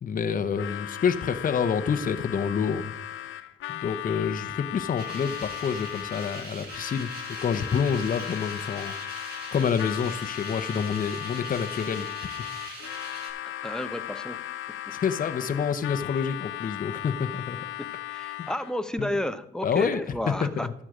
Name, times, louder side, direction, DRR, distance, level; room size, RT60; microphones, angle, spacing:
voice 1, 0.0-2.9 3.7-7.1 7.4-8.9 9.5-12.1 14.9-17.6 18.4-18.5 19.0-19.1 19.6-20.0 20.4-20.7, left 6 dB, 45° left, 9 dB, 0.9 m, -28 dB
Harmonica, 0.5-18.8, left 14 dB, 80° left, 0.6 m, -37 dB
sound 1, 5.0-13.3, right 2 dB, 55° right, 4.7 m, -42 dB
voice 2, 13.4-14.4 17.8-20.7, left 1 dB, 5° left, 10 dB, 0.8 m, -32 dB
12.5 x 7.5 x 5.0 m, 0.85 s
cardioid pair, 90°, 20 cm